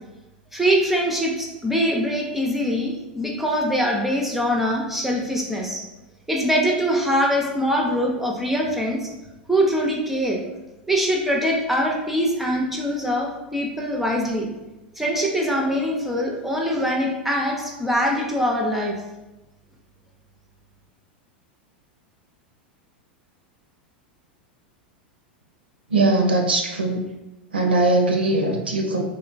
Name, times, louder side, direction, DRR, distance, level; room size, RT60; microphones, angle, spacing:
voice 1, 0.5-5.8 6.3-9.1 9.5-10.4 10.9-14.5 15.0-19.0, equal, 5° right, -1 dB, 0.4 m, -23 dB
voice 2, 25.9-27.1 27.5-29.0, right 2 dB, 80° right, 2 dB, 0.4 m, -20 dB
3.0 x 2.8 x 2.4 m, 1.0 s
figure-of-eight pair, 90°, 5 cm